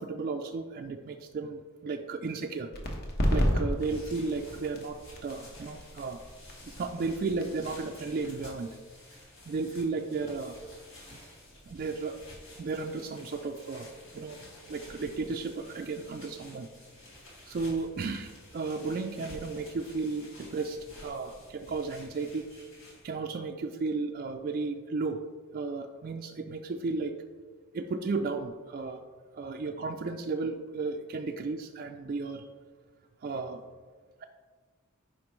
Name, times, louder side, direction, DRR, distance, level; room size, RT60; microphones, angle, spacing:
voice 1, 0.0-2.7 3.3-6.2 6.7-8.7 9.5-10.6 11.7-12.2 12.6-13.9 14.1-14.4 14.7-16.7 17.5-22.7 23.0-25.2 25.5-27.1 27.7-29.0 29.3-32.4 33.2-33.6, right 4 dB, 45° right, 3 dB, 0.3 m, -34 dB
sound 1, 2.7-10.0, equal, 50° left, 1.1 m, -33 dB
sound 2, 3.6-23.2, left 1 dB, 65° left, 2.0 m, -51 dB
8.5 x 5.1 x 3.1 m, 1.5 s
head